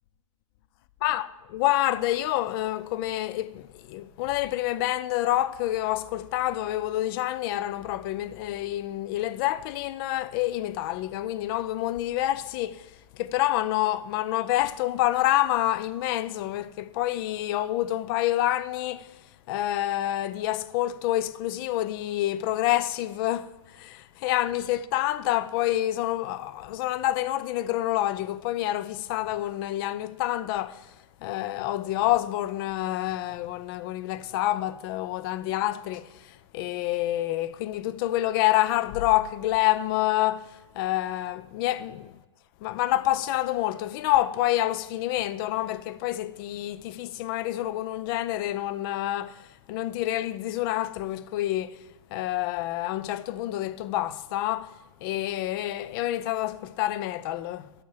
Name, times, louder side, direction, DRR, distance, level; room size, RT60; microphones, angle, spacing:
voice 1, 1.0-19.2 19.5-30.9 31.2-42.1 42.6-51.8 52.1-57.8, left 14 dB, 40° left, 0.4 m, -28 dB
6.5 x 5.7 x 6.4 m
hypercardioid pair, 130°, 17 cm